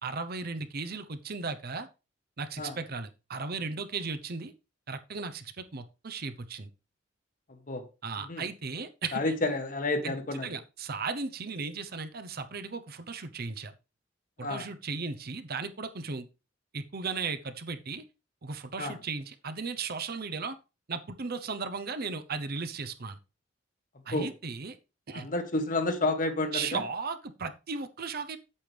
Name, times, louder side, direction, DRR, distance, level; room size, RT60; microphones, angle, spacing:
voice 1, 0.0-1.9 2.4-4.5 4.9-6.7 8.0-9.3 10.0-10.2 10.4-13.7 14.4-16.3 16.7-18.0 18.4-20.6 20.9-23.2 24.1-24.8 25.1-25.3 26.5-28.4, right 4 dB, 55° right, 0.8 m, -36 dB
voice 2, 9.1-10.5 14.4-14.6 18.8-18.9 24.1-24.3 25.1-26.8, left 2 dB, 45° left, 1.3 m, -30 dB
8.5 x 7.6 x 3.4 m
head